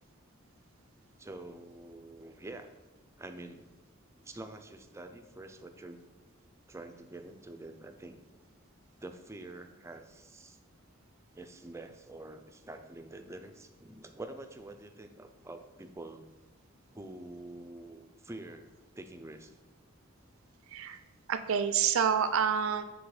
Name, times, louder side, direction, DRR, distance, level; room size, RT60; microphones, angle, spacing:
voice 1, 1.2-2.7 3.2-3.7 4.2-6.0 6.7-8.2 9.0-10.6 11.4-16.3 16.9-18.7 19.0-19.5, right 2 dB, 15° right, 7 dB, 0.4 m, -46 dB
voice 2, 20.7-21.0 21.3-22.8, right 7 dB, 75° right, 11 dB, 0.4 m, -28 dB
7.2 x 3.4 x 4.8 m, 1.1 s
head